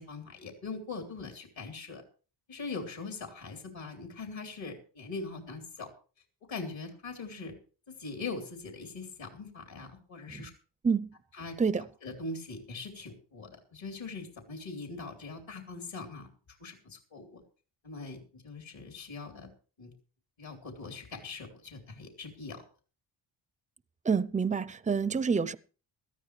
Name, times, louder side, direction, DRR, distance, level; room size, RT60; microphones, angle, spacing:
voice 1, 0.0-2.0 2.5-5.9 6.5-7.5 7.9-10.5 11.3-11.6 12.0-16.3 16.6-17.4 17.8-19.5 19.8-19.9 20.4-22.6 25.3-25.5, left 3 dB, 70° left, 3.8 m, -41 dB
voice 2, 24.0-25.6, right 5 dB, 15° right, 0.5 m, -28 dB
18.5 x 13.5 x 3.3 m
cardioid pair, 95°, 48 cm